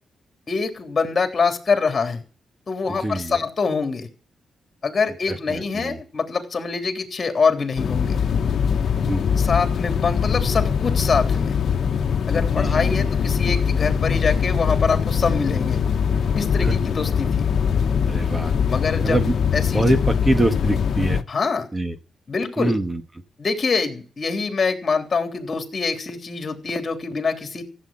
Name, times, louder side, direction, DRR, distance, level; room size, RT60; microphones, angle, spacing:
voice 1, 0.5-2.2 2.7-4.1 4.8-8.2 9.4-11.6 12.3-15.8 16.3-17.5 18.7-19.2 19.5-19.8 21.3-21.7 22.3-22.8 23.4-27.6, left 4 dB, 40° left, 5 dB, 3.4 m, -24 dB
voice 2, 3.0-3.4 5.3-6.0 9.1-9.2 12.5-13.1 16.6-16.7 18.1-18.5 19.0-19.3 19.7-21.2 21.7-21.9 22.6-23.0, right 1 dB, 20° right, 7 dB, 1.6 m, -23 dB
sound 1, 7.8-21.2, left 7 dB, 60° left, 1.2 m, -22 dB
15.5 x 8.5 x 8.9 m, 0.38 s
cardioid pair, 105°, 0 cm